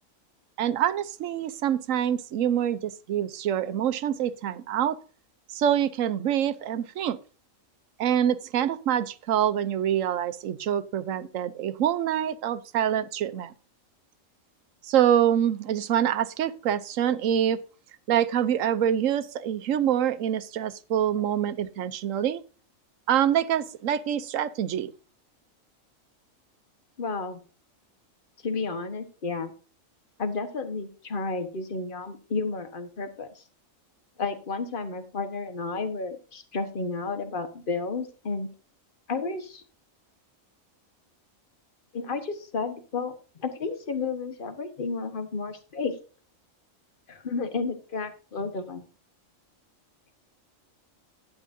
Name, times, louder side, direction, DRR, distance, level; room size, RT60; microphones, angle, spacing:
voice 1, 0.6-5.0 5.5-7.2 8.0-13.5 14.8-17.6 18.1-22.4 23.1-24.9, right 10 dB, 75° right, 1.1 m, -25 dB
voice 2, 27.0-27.4 28.4-29.5 30.2-33.4 34.2-38.5 39.1-39.6 41.9-43.1 43.4-45.9 47.1-48.8, left 4 dB, 40° left, 1.4 m, -32 dB
11.5 x 9.3 x 2.7 m
omnidirectional pair, 1.4 m